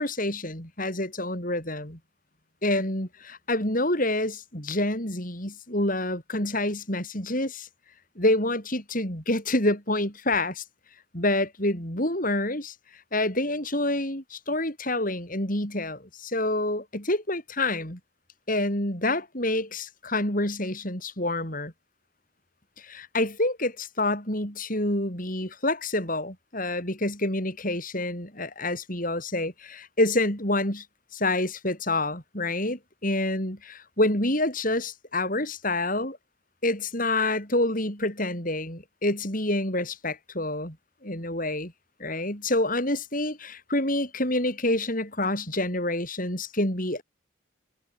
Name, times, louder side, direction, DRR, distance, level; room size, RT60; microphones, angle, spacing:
voice 1, 0.0-2.0 2.6-7.7 8.2-10.6 11.1-12.7 13.1-18.0 18.5-21.7 22.8-30.8 31.1-36.2 36.6-40.8 41.0-41.7 42.0-47.0, left 1 dB, 40° left, 7.9 m, -27 dB
head